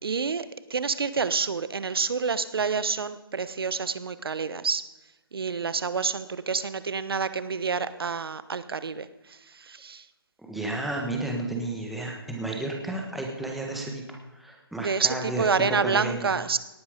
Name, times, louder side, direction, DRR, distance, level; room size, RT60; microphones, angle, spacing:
voice 1, 0.0-4.9 5.3-10.1 14.8-16.6, right 5 dB, 75° right, 14 dB, 1.1 m, -28 dB
voice 2, 10.4-15.5 15.8-16.3, right 2 dB, ahead, -1 dB, 1.5 m, -32 dB
18.0 x 9.7 x 5.2 m, 1.1 s
hypercardioid pair, 160°, 13 cm